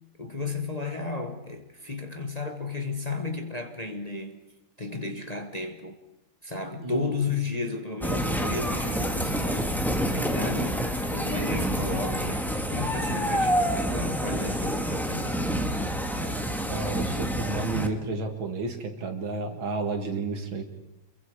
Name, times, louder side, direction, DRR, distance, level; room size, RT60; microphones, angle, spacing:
voice 1, 0.2-4.4 4.8-6.0 6.4-15.4, left 3 dB, 25° left, 1.2 m, -33 dB
voice 2, 6.8-7.1 16.1-20.6, right 3 dB, 80° right, 2.9 m, -32 dB
sound 1, 8.0-17.9, equal, ahead, 1.4 m, -28 dB
28.0 x 22.5 x 4.9 m
omnidirectional pair, 2.1 m